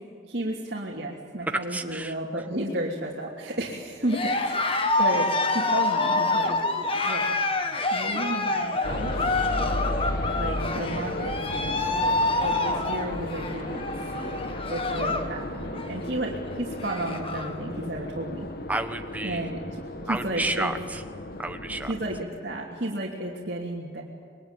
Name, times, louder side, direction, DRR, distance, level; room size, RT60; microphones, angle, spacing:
voice 1, 0.2-4.6 5.0-6.6 7.0-7.3 7.9-9.2 10.4-14.4 14.7-18.5 19.2-20.7 21.9-24.0, right 1 dB, 55° right, -4 dB, 3.1 m, -32 dB
voice 2, 1.4-2.2 18.7-19.5 20.1-21.0 21.4-21.9, right 2 dB, 10° right, 7 dB, 1.2 m, -30 dB
Cheering, 4.0-15.3 15.6-16.0 16.5-16.6 16.7-17.6, left 2 dB, 30° left, 1.6 m, -27 dB
sound 1, 8.8-22.2, left 1 dB, 50° left, 1.5 m, -34 dB
27.0 x 22.0 x 9.2 m, 2.1 s
head